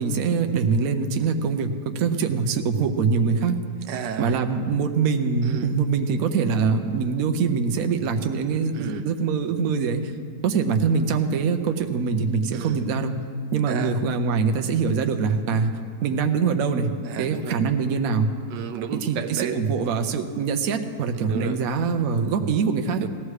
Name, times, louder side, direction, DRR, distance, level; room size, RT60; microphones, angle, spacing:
voice 1, 0.0-3.6 4.2-10.0 10.4-13.2 13.5-15.7 16.0-16.9 17.2-18.3 18.9-23.1, right 5 dB, 65° right, 5 dB, 1.1 m, -23 dB
voice 2, 3.9-4.4 5.4-5.7 8.7-9.0 12.5-12.8 13.7-13.9 17.0-17.5 18.5-19.6 21.2-21.6 23.0-23.1, right 8 dB, 80° right, 7 dB, 1.3 m, -32 dB
17.5 x 14.5 x 3.2 m, 2.1 s
omnidirectional pair, 1.9 m